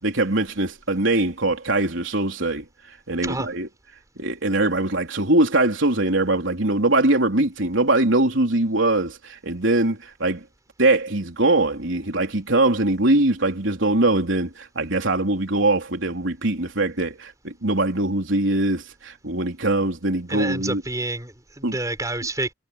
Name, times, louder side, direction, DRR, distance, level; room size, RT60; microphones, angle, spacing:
voice 1, 0.0-2.7 3.1-3.7 4.2-10.4 10.8-20.8 21.6-21.8, right 2 dB, 70° right, 3.8 m, -22 dB
voice 2, 20.3-22.5, right 2 dB, 15° right, 5.7 m, -28 dB
head